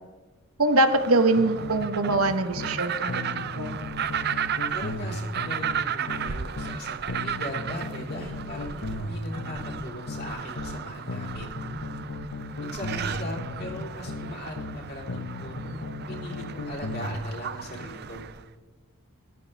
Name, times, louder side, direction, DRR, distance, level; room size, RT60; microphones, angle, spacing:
voice 1, 0.6-3.7, right 2 dB, 80° right, 8 dB, 1.2 m, -23 dB
sound 1, 0.7-18.4, right 8 dB, 50° right, 0.6 m, -35 dB
sound 2, 1.4-2.8 3.1-6.8 7.1-10.8 11.1-14.8 15.1-17.2, left 2 dB, 75° left, 1.0 m, -36 dB
voice 2, 4.7-11.6 12.6-18.2, left 1 dB, 45° left, -1 dB, 3.7 m, -39 dB
16.0 x 12.0 x 3.4 m, 1.3 s
head